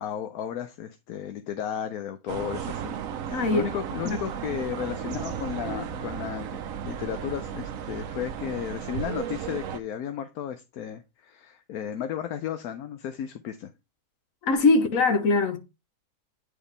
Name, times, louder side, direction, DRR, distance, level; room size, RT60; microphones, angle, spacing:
voice 1, 0.0-3.0 3.3-6.6 6.8-13.7, left 9 dB, 80° left, 1.1 m, -34 dB
sound 1, 2.3-9.8, right 8 dB, 70° right, 1.1 m, -34 dB
voice 2, 3.3-3.7 14.4-15.6, left 3 dB, 65° left, 1.4 m, -21 dB
8.7 x 4.8 x 3.3 m
omnidirectional pair, 1.6 m